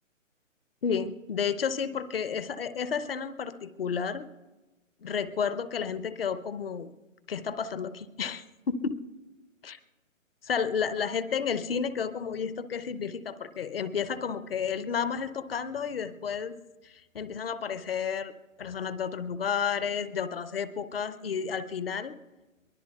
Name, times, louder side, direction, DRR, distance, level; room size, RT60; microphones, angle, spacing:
voice 1, 0.8-4.3 5.0-6.9 7.3-9.0 9.6-9.8 10.4-16.6 16.8-18.3 18.6-22.2, left 6 dB, 45° left, 14 dB, 0.7 m, -31 dB
23.0 x 19.5 x 2.3 m, 1.1 s
figure-of-eight pair, 145°, 40 cm